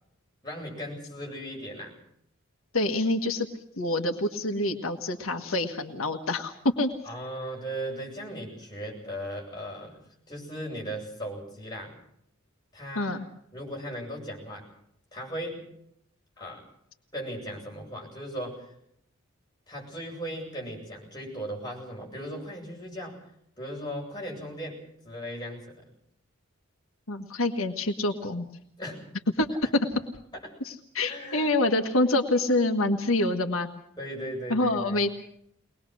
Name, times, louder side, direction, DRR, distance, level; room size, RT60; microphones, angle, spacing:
voice 1, 0.4-2.0 7.0-10.0 10.3-12.0 12.7-13.2 13.5-14.7 15.1-15.7 16.4-16.6 17.1-18.7 19.7-23.2 23.6-25.8 28.8-29.1 31.0-31.5 34.0-35.0, equal, 20° left, -1 dB, 7.9 m, -37 dB
voice 2, 2.7-3.5 3.8-6.9 12.9-13.3 27.1-28.5 29.4-29.5 30.6-33.7 34.5-35.1, left 2 dB, 85° left, 4 dB, 1.7 m, -26 dB
23.0 x 20.5 x 6.4 m, 0.71 s
head